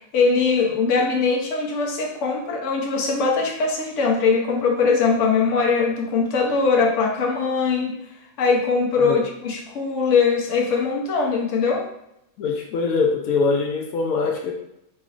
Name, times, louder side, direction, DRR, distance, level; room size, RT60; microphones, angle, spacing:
voice 1, 0.1-8.0 8.4-11.9, left 4 dB, 65° left, 0 dB, 1.0 m, -21 dB
voice 2, 12.4-14.5, left 4 dB, 90° left, 2 dB, 1.0 m, -23 dB
3.8 x 3.1 x 2.4 m, 0.79 s
omnidirectional pair, 1.4 m